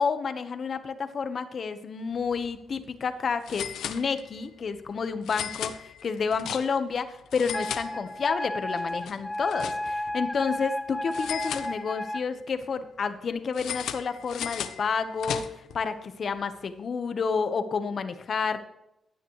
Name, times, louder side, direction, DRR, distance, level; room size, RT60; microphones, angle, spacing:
voice 1, 0.0-18.6, left 5 dB, 55° left, 10 dB, 1.2 m, -30 dB
sound 1, 2.3-2.5 2.8-2.9 3.4-4.5 5.2-6.9 7.3-8.4 8.8-10.1 11.1-12.2 13.5-15.8, left 9 dB, 85° left, 0.9 m, -37 dB
Wind instrument woodwind instrument, 7.5-12.2, left 1 dB, 10° left, 0.9 m, -33 dB
16.0 x 9.9 x 3.2 m, 0.89 s
cardioid pair, 95°, 0 cm